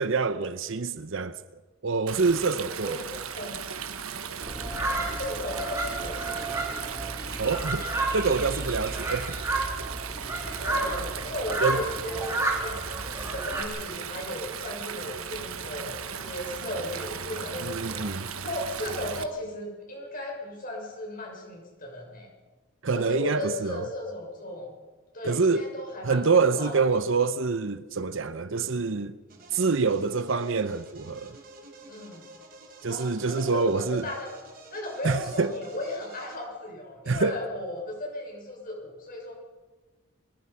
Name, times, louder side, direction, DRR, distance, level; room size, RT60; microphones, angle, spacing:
voice 1, 0.0-1.4 1.8-3.0 7.4-7.9 8.1-9.4 11.6-11.8 17.6-18.3 22.8-23.8 25.2-25.7 26.0-29.1 29.5-31.3 32.8-34.0 35.0-35.5 37.1-37.4, right 4 dB, 60° right, 0.8 m, -26 dB
Stream, 2.1-19.2, right 7 dB, 80° right, 1.4 m, -37 dB
voice 2, 2.8-3.6 4.8-6.6 10.6-18.1 18.4-22.3 22.9-24.7 25.1-26.8 31.9-32.2 32.9-34.3 34.7-39.3, left 1 dB, 40° left, 6.7 m, -36 dB
sound 1, 4.4-13.6, right 2 dB, 15° right, 3.0 m, -32 dB
sound 2, 29.3-36.4, right 2 dB, 40° right, 4.5 m, -49 dB
24.0 x 20.0 x 5.7 m
head